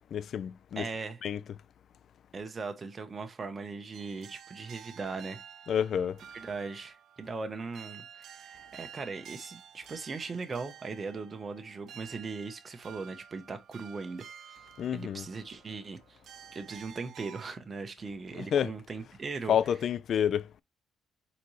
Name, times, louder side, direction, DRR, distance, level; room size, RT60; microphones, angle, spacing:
voice 1, 0.1-0.9 1.2-1.4 5.7-6.2 14.8-15.3 18.3-18.7 19.5-20.5, left 9 dB, 60° left, 0.3 m, -29 dB
voice 2, 0.8-1.2 2.3-5.4 6.3-14.3 14.5-14.6 14.9-16.2 16.5-19.6, right 4 dB, 30° right, 0.9 m, -39 dB
sound 1, 3.9-17.5, right 9 dB, 65° right, 0.4 m, -51 dB
4.2 x 4.1 x 3.1 m
cardioid pair, 130°, 0 cm